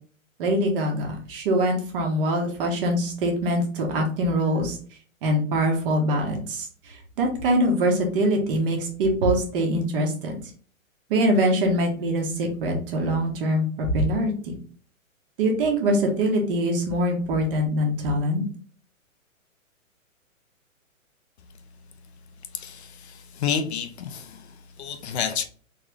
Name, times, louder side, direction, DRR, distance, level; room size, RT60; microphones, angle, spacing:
voice 1, 0.4-4.8 5.2-6.7 7.2-10.4 11.1-14.5 15.4-18.4, equal, 40° right, 1.4 m, -23 dB
voice 2, 22.5-25.4, left 7 dB, 50° left, 0.7 m, -30 dB
3.9 x 3.3 x 3.5 m
hypercardioid pair, 125°, 41 cm